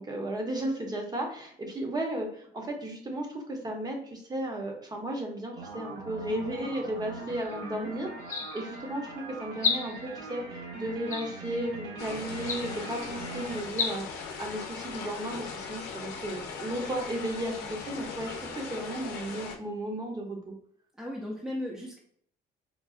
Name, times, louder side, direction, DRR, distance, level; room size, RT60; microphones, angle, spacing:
voice 1, 0.0-8.1 8.5-20.5, right 1 dB, 25° right, 1 dB, 0.8 m, -34 dB
sound 1, 5.5-13.6, right 3 dB, 85° right, 1.1 m, -41 dB
sound 2, 7.3-7.5 8.2-8.8 9.6-10.2 11.1-11.6 12.4-12.9 13.7-13.9, left 5 dB, 50° left, 0.8 m, -32 dB
voice 2, 7.6-8.0 17.6-17.7 21.0-22.0, left 1 dB, 5° right, -2 dB, 0.5 m, -37 dB
sound 3, 12.0-19.6, left 5 dB, 90° left, 0.6 m, -39 dB
3.7 x 2.3 x 2.4 m, 0.62 s
cardioid pair, 110°, 17 cm